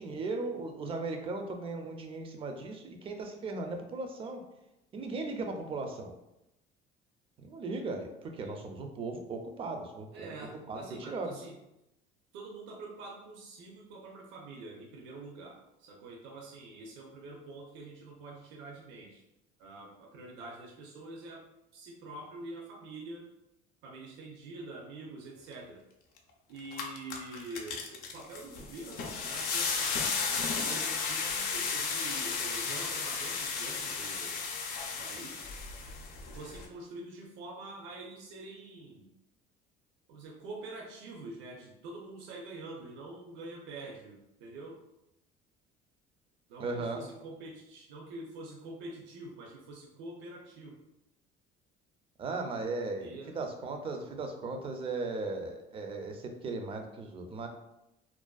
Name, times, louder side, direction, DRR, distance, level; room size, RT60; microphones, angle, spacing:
voice 1, 0.0-4.4 4.9-6.1 7.4-10.3 10.7-11.3 46.6-47.0 52.2-57.5, right 3 dB, 30° right, 4 dB, 0.4 m, -37 dB
voice 2, 10.1-11.6 12.3-19.2 19.6-21.4 21.7-23.2 23.8-25.8 26.5-29.9 30.2-34.4 34.9-35.5 36.3-39.1 40.1-44.8 46.5-50.7 53.0-53.4, right 2 dB, 80° right, -1 dB, 0.5 m, -46 dB
sound 1, 26.2-26.3 26.6-36.7, left 5 dB, 55° left, 0.5 m, -34 dB
2.5 x 2.2 x 2.2 m, 0.87 s
cardioid pair, 130°, 19 cm